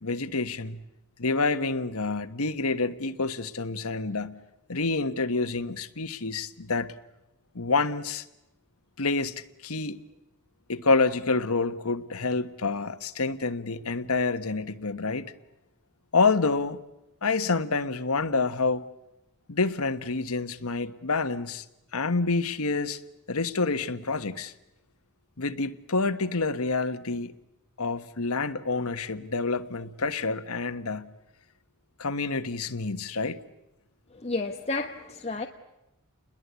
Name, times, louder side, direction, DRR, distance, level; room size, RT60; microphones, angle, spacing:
voice 1, 0.0-0.8 1.2-4.3 4.7-6.9 7.5-8.2 9.0-9.3 9.6-10.0 10.7-15.3 16.1-16.8 17.2-18.9 19.5-21.6 21.9-23.0 23.3-24.5 25.4-27.3 27.8-31.1 32.0-33.4, left 3 dB, 75° left, 1.4 m, -28 dB
voice 2, 34.1-35.5, left 3 dB, 30° left, 1.3 m, -31 dB
30.0 x 21.5 x 8.3 m
head